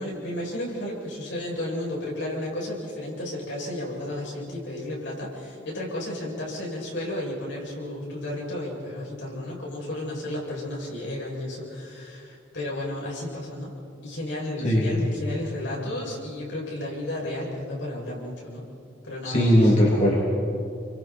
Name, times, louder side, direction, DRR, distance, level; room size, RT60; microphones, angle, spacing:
voice 1, 0.0-13.7 14.0-18.6 19.0-19.7, left 1 dB, 80° left, -4 dB, 7.7 m, -33 dB
voice 2, 14.6-15.0 19.2-20.3, equal, 40° left, -4 dB, 3.0 m, -20 dB
30.0 x 24.5 x 4.6 m, 2.6 s
head